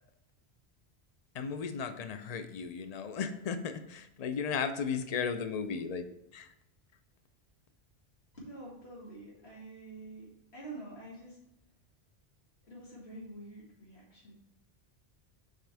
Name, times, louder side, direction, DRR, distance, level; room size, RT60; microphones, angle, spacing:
voice 1, 1.3-6.1 6.3-6.5, left 6 dB, 45° left, 9 dB, 0.6 m, -35 dB
voice 2, 8.3-11.4 12.7-14.3, right 2 dB, 75° left, -5 dB, 2.5 m, -47 dB
7.5 x 5.1 x 3.4 m, 0.82 s
omnidirectional pair, 1.1 m